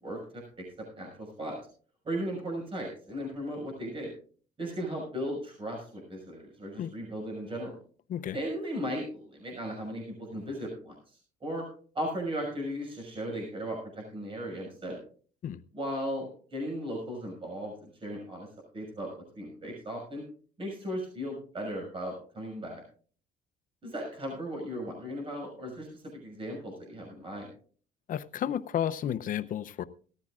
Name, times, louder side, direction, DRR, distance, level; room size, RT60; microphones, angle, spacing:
voice 1, 0.0-0.4 0.8-1.6 2.0-4.1 4.6-7.8 8.3-11.6 11.9-15.0 15.7-18.5 18.7-20.2 20.6-22.8 23.8-27.5, equal, 30° right, 0 dB, 6.0 m, -36 dB
voice 2, 28.1-29.8, left 10 dB, 50° left, 14 dB, 0.7 m, -32 dB
18.5 x 14.0 x 2.5 m, 0.42 s
cardioid pair, 110°, 17 cm